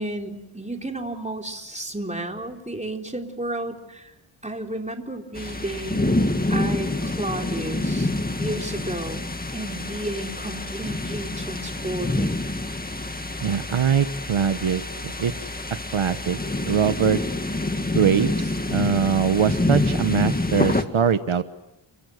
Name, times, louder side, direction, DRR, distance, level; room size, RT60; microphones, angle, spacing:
voice 1, 0.0-4.1 4.4-8.1 8.4-9.2 9.5-12.4, right 1 dB, 15° right, 3 dB, 3.8 m, -32 dB
sound 1, 5.4-20.8, left 2 dB, 20° left, 2.0 m, -27 dB
voice 2, 13.4-15.3 15.9-16.4 16.7-17.2 17.9-21.4, right 7 dB, 75° right, 10 dB, 1.2 m, -22 dB
29.0 x 25.0 x 8.0 m, 0.91 s
wide cardioid pair, 105°, 49 cm